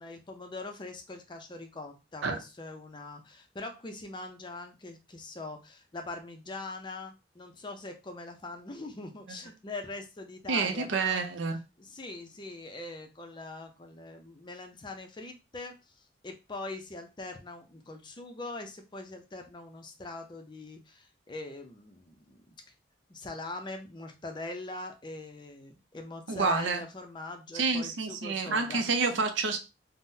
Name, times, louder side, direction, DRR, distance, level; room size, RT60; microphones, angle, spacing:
voice 1, 0.0-11.3 11.8-15.9 16.2-22.5 23.1-28.8, left 2 dB, 25° left, 0.4 m, -42 dB
voice 2, 10.5-11.6 26.3-26.8 27.5-29.6, right 4 dB, 75° right, 0.5 m, -28 dB
3.7 x 2.0 x 2.6 m
head